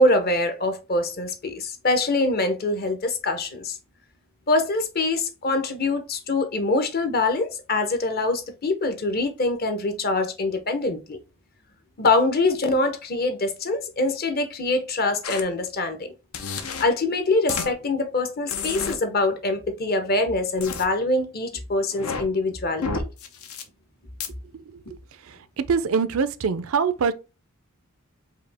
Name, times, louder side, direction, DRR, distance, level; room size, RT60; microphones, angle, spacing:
voice 1, 0.0-3.8 4.5-11.2 12.0-16.1 16.8-22.9, left 2 dB, 45° left, 0.8 m, -24 dB
sound 1, 15.2-15.4 16.3-16.8 17.5-17.7 18.5-18.9 20.6-20.8 21.9-22.2 22.8-23.6 24.2-24.3, left 5 dB, 80° left, 0.8 m, -30 dB
voice 2, 25.7-27.1, right 5 dB, 70° right, 0.4 m, -23 dB
4.9 x 2.8 x 3.3 m
head